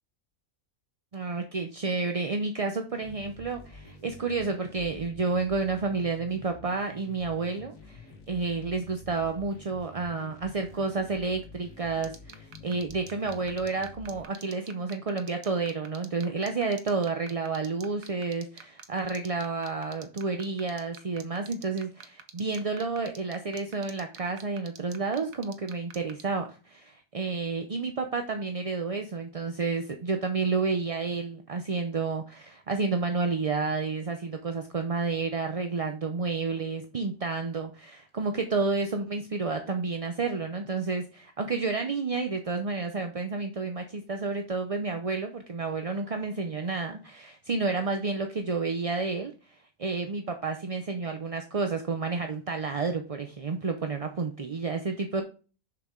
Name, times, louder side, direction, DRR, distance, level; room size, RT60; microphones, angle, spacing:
voice 1, 1.1-55.2, right 4 dB, 35° right, 5 dB, 0.6 m, -30 dB
sound 1, 2.9-14.2, left 1 dB, 75° left, 1.9 m, -49 dB
sound 2, 12.0-26.2, right 8 dB, 85° right, 1.4 m, -45 dB
6.9 x 6.8 x 3.7 m, 0.36 s
omnidirectional pair, 1.4 m